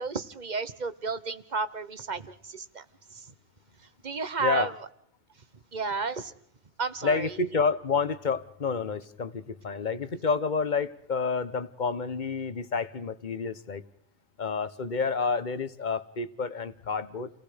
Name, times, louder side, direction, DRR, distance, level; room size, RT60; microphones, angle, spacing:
voice 1, 0.0-2.8 3.1-3.3 4.0-4.7 5.7-6.3 6.8-7.3, right 4 dB, 40° right, 13 dB, 1.2 m, -32 dB
voice 2, 4.4-4.7 7.0-13.8 14.4-17.3, left 5 dB, 45° left, 13 dB, 1.2 m, -29 dB
29.5 x 19.0 x 5.1 m, 0.67 s
omnidirectional pair, 1.2 m